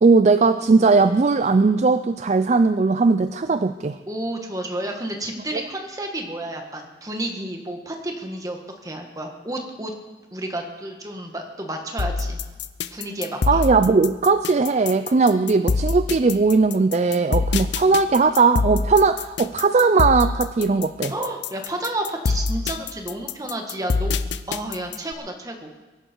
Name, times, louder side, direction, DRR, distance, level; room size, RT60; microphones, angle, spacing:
voice 1, 0.0-4.0 5.5-5.6 13.5-21.1, right 4 dB, 40° right, 11 dB, 0.4 m, -18 dB
voice 2, 4.1-9.9 10.3-12.4 12.9-13.6 21.1-24.2 24.5-25.7, right 1 dB, 20° right, 3 dB, 1.7 m, -31 dB
sound 1, 12.0-25.1, left 4 dB, 85° left, 0.6 m, -25 dB
22.5 x 11.0 x 4.6 m, 1.2 s
head